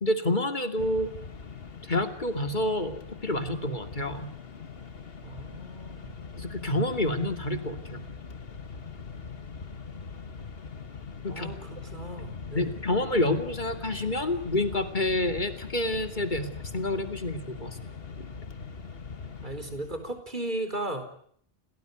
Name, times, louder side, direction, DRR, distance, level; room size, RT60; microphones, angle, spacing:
voice 1, 0.0-1.1 1.9-4.3 6.4-8.0 11.2-11.5 12.5-17.8 18.2-18.3, left 1 dB, 50° left, 8 dB, 2.8 m, -28 dB
Mechanisms, 0.8-20.2, left 5 dB, 65° left, 1.7 m, -42 dB
voice 2, 5.2-6.2 11.3-12.7 19.4-21.0, right 1 dB, 50° right, 9 dB, 4.7 m, -36 dB
29.5 x 18.5 x 9.4 m, 0.64 s
omnidirectional pair, 1.1 m